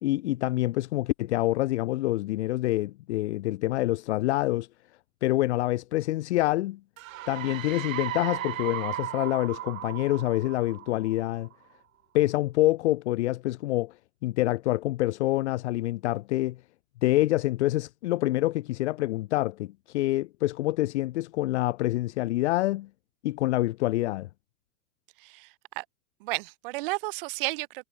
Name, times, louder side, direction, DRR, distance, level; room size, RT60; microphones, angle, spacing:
voice 1, 0.0-4.7 5.2-6.8 7.3-11.5 12.1-13.9 14.2-16.6 17.0-22.9 23.2-24.3, left 17 dB, 50° left, 1.0 m, -26 dB
sound 1, 7.0-11.5, right 14 dB, 65° right, 1.7 m, -36 dB
voice 2, 25.2-25.8 26.2-27.9, right 23 dB, 40° right, 1.2 m, -33 dB
supercardioid pair, 160°, 44 cm